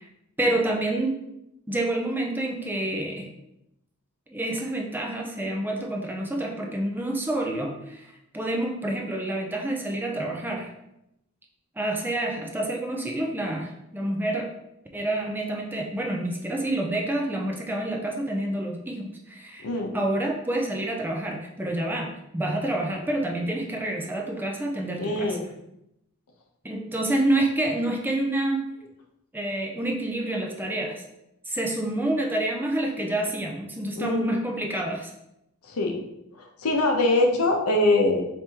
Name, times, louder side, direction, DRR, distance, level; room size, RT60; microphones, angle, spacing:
voice 1, 0.4-1.2 1.7-3.3 4.3-10.7 11.8-14.5 14.9-19.7 19.9-25.4 26.6-28.6 29.3-31.0 31.4-35.1, right 1 dB, 10° right, 1 dB, 0.4 m, -28 dB
voice 2, 19.6-19.9 25.0-25.4 33.9-34.4 35.6-36.0 36.3-38.2, left 2 dB, 75° left, 2 dB, 0.7 m, -23 dB
4.6 x 3.4 x 2.8 m, 0.84 s
head